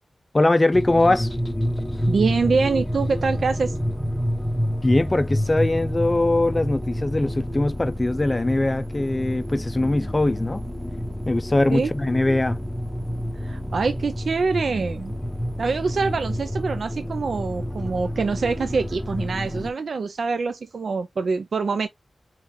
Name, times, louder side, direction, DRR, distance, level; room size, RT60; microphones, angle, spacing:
voice 1, 0.3-1.3 4.8-10.6 11.3-12.6, left 2 dB, 25° left, 0.4 m, -21 dB
sound 1, 0.7-19.7, equal, ahead, 0.8 m, -28 dB
voice 2, 2.1-3.8 11.7-11.9 13.3-15.2 15.6-21.9, right 4 dB, 65° right, 0.4 m, -25 dB
3.2 x 3.1 x 3.5 m
wide cardioid pair, 115°, 0 cm